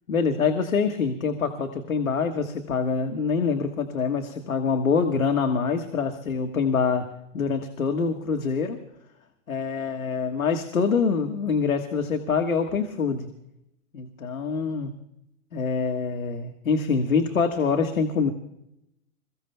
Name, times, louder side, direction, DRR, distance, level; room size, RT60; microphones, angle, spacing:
voice 1, 0.1-7.1 7.3-8.8 9.5-13.3 13.9-14.9 15.5-18.3, left 5 dB, 85° left, 6 dB, 1.5 m, -25 dB
27.5 x 15.5 x 2.2 m, 0.82 s
hypercardioid pair, 110°, 41 cm